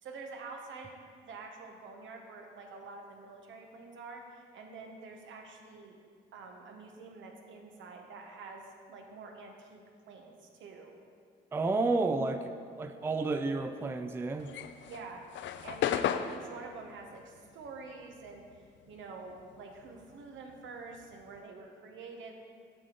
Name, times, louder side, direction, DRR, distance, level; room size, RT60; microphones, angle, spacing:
voice 1, 0.0-6.0 6.3-9.8 10.1-10.9 14.9-15.2 15.6-18.6 18.9-22.4, right 4 dB, 75° right, 2 dB, 1.0 m, -47 dB
voice 2, 11.5-14.5, right 3 dB, 10° right, 8 dB, 0.3 m, -31 dB
sound 1, 14.4-19.1 19.4-21.4, left 9 dB, 70° left, 0.4 m, -35 dB
7.6 x 6.1 x 3.8 m, 2.2 s
cardioid pair, 90°, 20 cm